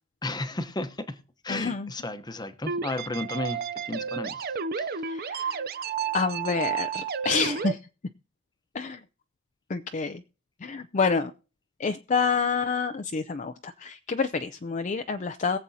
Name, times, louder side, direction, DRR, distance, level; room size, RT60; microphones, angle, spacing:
voice 1, 0.2-1.2 1.4-4.5 4.8-5.1, left 2 dB, 20° left, 0.9 m, -33 dB
voice 2, 1.5-1.9 5.1-5.5 6.1-7.8 8.7-9.0 9.7-10.2 10.6-11.3 11.8-15.6, left 5 dB, 35° left, 0.4 m, -28 dB
sound 1, 2.7-7.7, right 6 dB, 45° right, 0.6 m, -31 dB
22.0 x 7.6 x 2.8 m
head